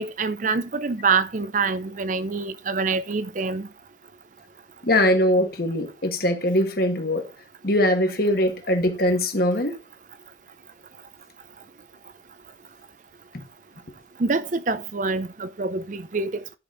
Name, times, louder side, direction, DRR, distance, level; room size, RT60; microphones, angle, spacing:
voice 1, 0.0-3.7 14.2-16.4, right 4 dB, 40° right, 0.5 m, -25 dB
voice 2, 4.8-7.3 7.6-9.8 13.3-13.4, left 1 dB, 50° left, 1.6 m, -22 dB
10.5 x 5.2 x 3.9 m
head